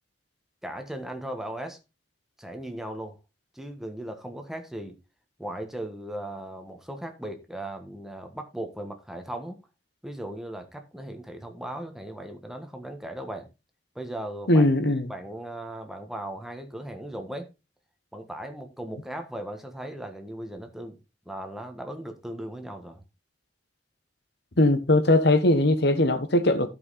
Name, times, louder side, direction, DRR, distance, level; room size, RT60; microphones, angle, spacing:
voice 1, 0.6-1.8 2.4-3.2 3.5-5.0 5.4-9.6 10.0-13.5 13.9-14.7 15.1-17.5 18.1-21.0 21.2-23.0, right 1 dB, ahead, 1.4 m, -37 dB
voice 2, 14.5-15.1 24.6-26.7, left 1 dB, 65° left, 1.3 m, -20 dB
12.0 x 5.4 x 4.1 m
head